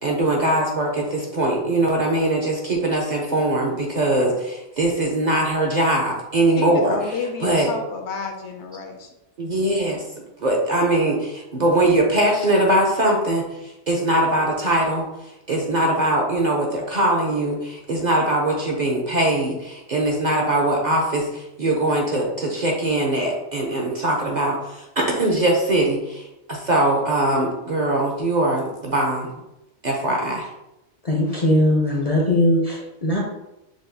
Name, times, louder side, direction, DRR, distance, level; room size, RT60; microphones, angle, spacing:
voice 1, 0.0-6.9 7.4-7.7 9.4-10.0 10.4-13.4 13.9-15.1 15.5-29.3 29.8-30.5, right 1 dB, 50° right, -1 dB, 0.6 m, -21 dB
voice 2, 6.6-9.1, left 4 dB, 70° left, 4 dB, 0.9 m, -30 dB
voice 3, 31.0-33.2, left 1 dB, 45° left, -3 dB, 0.5 m, -20 dB
6.2 x 2.3 x 2.6 m, 0.93 s
omnidirectional pair, 1.2 m